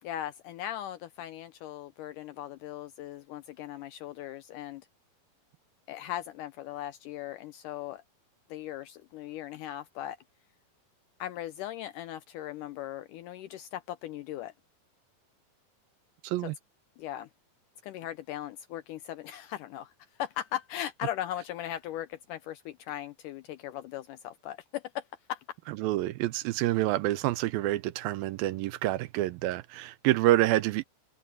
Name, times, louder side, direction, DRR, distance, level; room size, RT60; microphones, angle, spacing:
voice 1, 0.0-4.9 5.9-8.0 8.5-10.2 11.2-14.5 16.4-16.5 17.0-17.3 17.8-19.9 20.2-25.4, left 12 dB, 80° left, 1.9 m, -38 dB
voice 2, 16.2-16.6 25.8-30.8, right 16 dB, 80° right, 2.4 m, -27 dB
open air
omnidirectional pair, 4.3 m